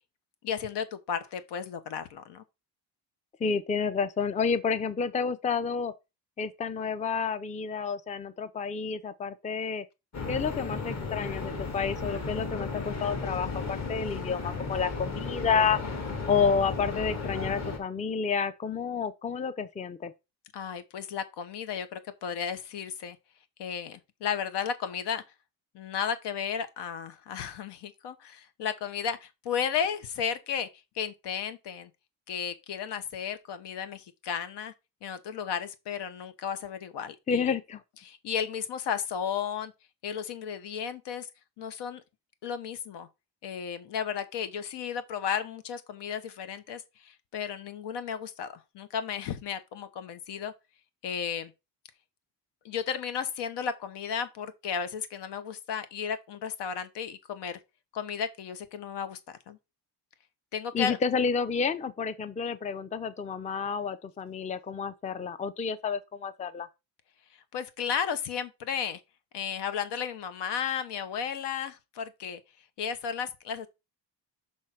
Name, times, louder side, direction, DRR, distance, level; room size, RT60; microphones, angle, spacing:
voice 1, 0.4-2.4 20.5-23.2 23.6-25.2 25.7-30.7 30.9-31.9 32.3-34.7 35.0-37.5 38.0-39.7 40.0-41.3 41.6-42.0 42.4-43.1 43.4-50.5 51.0-51.5 52.6-57.6 57.9-59.6 60.5-61.0 67.5-69.0 69.3-72.4 72.8-73.7, left 7 dB, 80° left, 1.1 m, -34 dB
voice 2, 3.4-5.9 6.4-9.8 10.3-15.8 16.3-20.1 37.3-37.8 60.7-66.7, left 6 dB, 20° left, 0.5 m, -30 dB
sound 1, 10.1-17.8, left 4 dB, 40° left, 1.8 m, -34 dB
6.3 x 3.2 x 5.8 m
cardioid pair, 125°, 41 cm